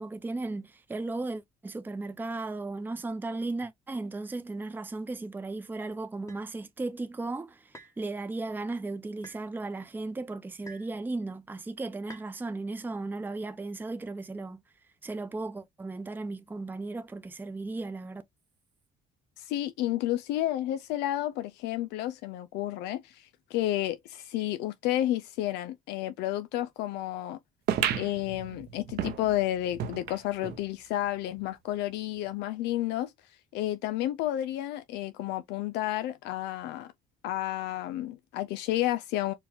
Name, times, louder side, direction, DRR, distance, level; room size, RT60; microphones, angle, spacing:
voice 1, 0.0-14.6 15.0-18.2, right 3 dB, 10° right, 0.5 m, -36 dB
sound 1, 6.3-6.5 7.7-8.0 9.2-9.4 10.7-11.0 12.1-12.3, right 1 dB, 20° left, 1.2 m, -48 dB
voice 2, 19.4-27.4 27.9-36.9 37.2-39.3, left 14 dB, 85° left, 0.4 m, -31 dB
sound 2, 27.7-30.6 31.1-31.2 31.4-31.5 32.3-32.4, right 10 dB, 70° right, 0.8 m, -33 dB
4.6 x 2.2 x 3.5 m
cardioid pair, 110°, 17 cm